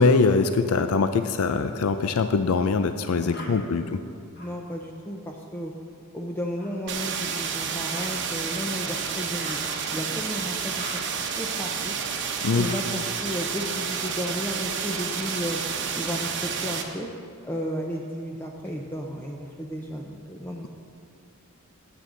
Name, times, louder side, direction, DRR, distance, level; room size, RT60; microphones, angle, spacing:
voice 1, 0.0-4.0 12.4-12.7, left 4 dB, 70° left, 9 dB, 0.4 m, -22 dB
voice 2, 3.2-3.6 4.4-5.7 6.1-9.6 9.9-11.0 11.4-12.0 12.6-15.6 15.9-17.1 17.4-20.7, equal, 10° left, 0 dB, 0.6 m, -33 dB
sound 1, 3.3-3.5 4.3-4.5 6.6-6.7 7.9-8.1 9.4-9.7 10.8-11.0 12.6-12.8 14.3-15.1 16.1-17.0 17.9-18.7, left 2 dB, 50° left, 2.0 m, -45 dB
sound 2, 6.9-16.8, right 6 dB, 55° right, 0.9 m, -30 dB
15.0 x 8.4 x 3.9 m, 2.4 s
head